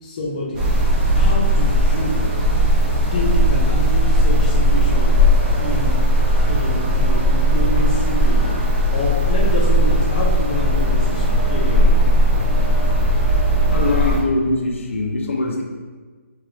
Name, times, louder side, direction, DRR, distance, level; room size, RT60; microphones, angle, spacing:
voice 1, 0.0-0.7 1.1-2.2 3.1-5.1 5.5-6.1 6.4-8.4 8.9-12.0, left 1 dB, 30° left, -3 dB, 0.6 m, -27 dB
sound 1, 0.5-14.2, equal, 10° right, 0.5 m, -17 dB
voice 2, 13.7-15.6, left 2 dB, 65° left, 1 dB, 0.8 m, -22 dB
4.7 x 3.7 x 3.1 m, 1.4 s
hypercardioid pair, 175°, 7 cm